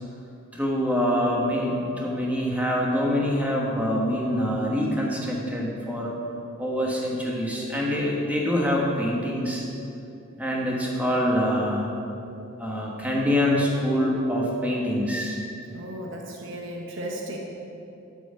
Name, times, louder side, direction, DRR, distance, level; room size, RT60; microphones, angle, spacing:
voice 1, 0.5-6.1 6.6-9.6 10.4-11.9 12.6-15.4, equal, 10° right, -3 dB, 1.3 m, -25 dB
voice 2, 15.7-17.4, right 1 dB, 75° right, 0 dB, 1.0 m, -35 dB
13.0 x 4.9 x 5.1 m, 2.8 s
head